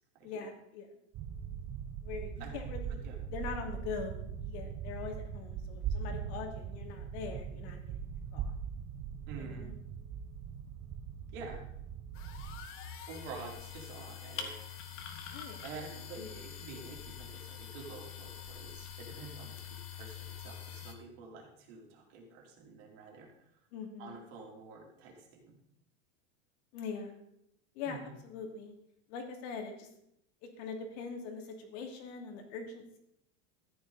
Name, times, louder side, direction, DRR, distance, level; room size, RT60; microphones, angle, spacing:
voice 1, 0.2-0.9 2.0-3.0 3.3-8.0 8.3-8.6 9.4-9.7 15.3-15.6 16.2-16.3 23.7-24.2 26.7-27.2 27.7-28.7 29.1-29.9 30.4-33.0, left 5 dB, 60° left, 3 dB, 2.8 m, -42 dB
sound 1, 1.1-12.7, right 7 dB, 30° right, 0.7 m, -41 dB
voice 2, 9.3-9.7 11.3-11.6 13.1-14.6 15.6-19.6 19.9-23.3 24.0-25.6 27.8-28.2, right 4 dB, 55° right, 0 dB, 3.5 m, -48 dB
sound 2, 12.1-20.9, left 8 dB, 35° left, 1.6 m, -45 dB
14.0 x 9.5 x 4.1 m, 0.77 s
supercardioid pair, 145°, 36 cm